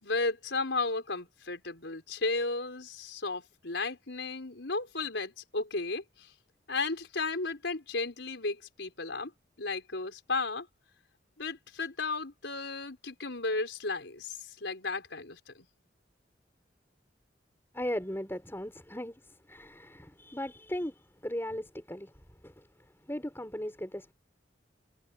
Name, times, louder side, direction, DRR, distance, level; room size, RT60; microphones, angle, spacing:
voice 1, 0.0-6.3 6.7-9.3 9.6-10.7 11.4-15.7, left 3 dB, 80° left, 4.4 m, -34 dB
voice 2, 17.7-22.1 22.4-24.1, equal, 15° left, 4.8 m, -38 dB
head